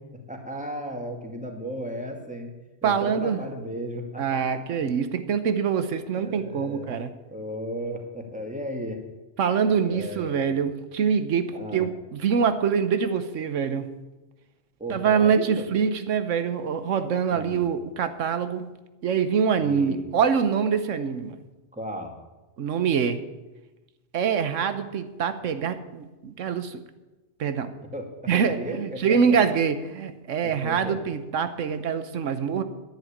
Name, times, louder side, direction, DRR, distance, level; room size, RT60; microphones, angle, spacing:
voice 1, 0.1-2.5 2.8-4.6 6.1-9.0 9.4-10.5 11.5-11.9 14.8-15.7 17.3-17.7 19.6-20.0 21.7-22.1 27.9-29.4 30.4-31.0, equal, 5° right, 2 dB, 2.1 m, -35 dB
voice 2, 2.8-3.4 4.2-7.1 9.4-13.9 14.9-18.7 19.0-21.4 22.6-23.2 24.1-26.8 27.4-27.7 28.3-32.6, right 6 dB, 90° right, 10 dB, 1.3 m, -25 dB
11.0 x 10.5 x 8.8 m, 1.1 s
omnidirectional pair, 1.2 m